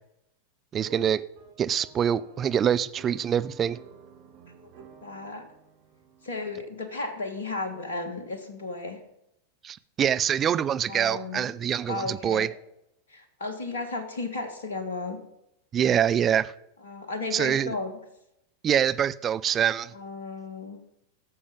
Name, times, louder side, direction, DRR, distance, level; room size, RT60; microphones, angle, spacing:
voice 1, 0.7-1.2 1.6-3.8 9.6-12.5 15.7-16.5 17.3-17.7 18.6-19.9, right 9 dB, 25° right, 0.5 m, -25 dB
sound 1, 0.8-6.7, right 5 dB, 50° right, 2.4 m, -51 dB
voice 2, 5.0-5.4 6.2-9.0 10.9-11.5 11.9-12.5 13.1-15.2 16.8-17.9 19.9-20.8, left 3 dB, 65° left, 1.6 m, -34 dB
16.5 x 7.0 x 5.3 m
figure-of-eight pair, 90°, 0 cm